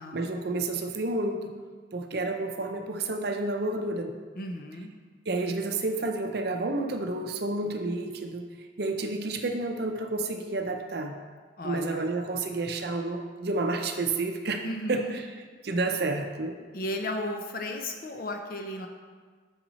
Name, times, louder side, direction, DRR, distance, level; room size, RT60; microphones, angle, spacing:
voice 1, 0.1-1.4 1.9-4.1 5.3-8.5 8.8-11.1 11.6-14.6 14.9-15.2 15.6-16.6, right 2 dB, 55° right, 4 dB, 0.6 m, -30 dB
voice 2, 4.4-4.9 11.6-12.1 14.6-15.1 16.7-18.9, left 1 dB, 50° left, 4 dB, 0.7 m, -34 dB
6.5 x 5.9 x 4.1 m, 1.5 s
head